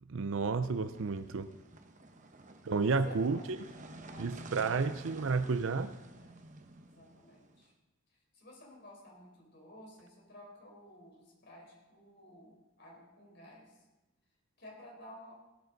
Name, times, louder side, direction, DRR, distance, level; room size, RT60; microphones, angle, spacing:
voice 1, 0.1-1.5 2.7-3.4 4.2-5.9, right 4 dB, 65° right, 0.5 m, -31 dB
sound 1, 0.7-7.7, right 2 dB, 35° right, 0.9 m, -51 dB
voice 2, 2.0-2.4 2.6-3.6 3.9-4.9 6.1-6.4 6.8-7.7 8.1-13.9 14.6-15.3, left 1 dB, 50° left, 4.4 m, -55 dB
16.5 x 13.5 x 4.0 m
head